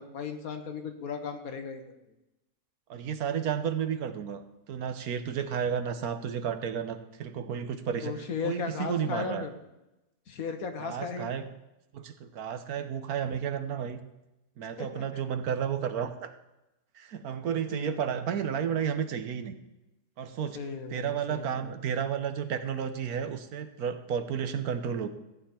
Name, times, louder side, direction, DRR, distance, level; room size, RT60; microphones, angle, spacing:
voice 1, 0.0-1.9 8.0-9.5 10.3-11.3 14.8-15.2 17.6-18.1 20.5-21.7, left 5 dB, 65° left, 6 dB, 1.6 m, -36 dB
voice 2, 2.9-9.5 10.8-11.5 11.9-14.0 14.6-16.3 16.9-19.6 20.2-20.6 20.9-25.1, right 8 dB, 70° right, 9 dB, 1.3 m, -32 dB
14.5 x 9.4 x 4.4 m, 0.95 s
omnidirectional pair, 1.7 m